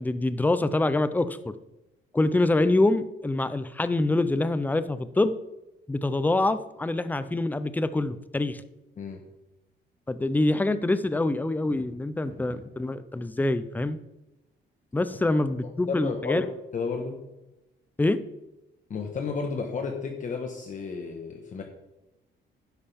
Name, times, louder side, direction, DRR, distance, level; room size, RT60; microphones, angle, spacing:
voice 1, 0.0-1.5 2.1-5.4 5.9-8.6 10.1-14.0 14.9-16.4 18.0-18.2, left 2 dB, 10° left, 12 dB, 0.5 m, -25 dB
sound 1, 11.5-12.9, right 2 dB, 20° right, 2.8 m, -46 dB
voice 2, 15.6-17.2 18.9-21.6, left 5 dB, 40° left, 2 dB, 1.4 m, -32 dB
11.5 x 10.5 x 3.6 m, 0.97 s
cardioid pair, 125°, 19 cm